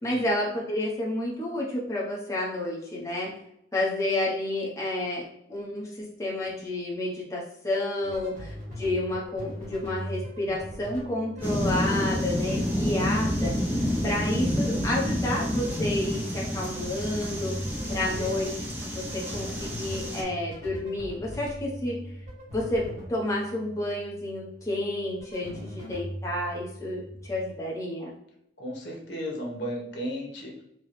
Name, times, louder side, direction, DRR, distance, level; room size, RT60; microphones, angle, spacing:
voice 1, 0.0-3.3 3.7-17.6 17.9-18.5 18.9-22.0 22.5-28.1, left 1 dB, 15° left, -5 dB, 1.0 m, -30 dB
sound 1, 8.0-27.5, equal, 45° right, 1.3 m, -40 dB
sound 2, 11.4-20.2, equal, 10° right, 0.7 m, -29 dB
voice 2, 17.9-18.4 28.6-30.6, equal, 80° left, -1 dB, 1.2 m, -35 dB
4.5 x 2.3 x 3.2 m, 0.77 s
head